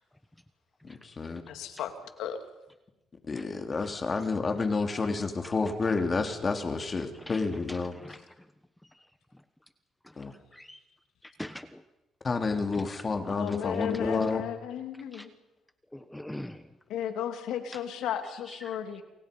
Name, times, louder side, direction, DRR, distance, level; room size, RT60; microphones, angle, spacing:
voice 1, 0.8-1.4 3.2-7.9 10.2-10.3 12.2-14.4, left 4 dB, 35° left, 5 dB, 3.3 m, -30 dB
voice 2, 1.5-2.4 13.3-15.3 16.9-19.0, left 9 dB, 85° left, 7 dB, 2.7 m, -34 dB
voice 3, 7.7-8.5 10.0-10.8 11.2-11.8 12.7-12.9 13.5-13.9 15.1-15.3 15.9-16.7 18.5-18.8, left 1 dB, 5° left, 10 dB, 1.2 m, -44 dB
28.5 x 23.5 x 5.4 m, 0.98 s
cardioid pair, 90°, 0 cm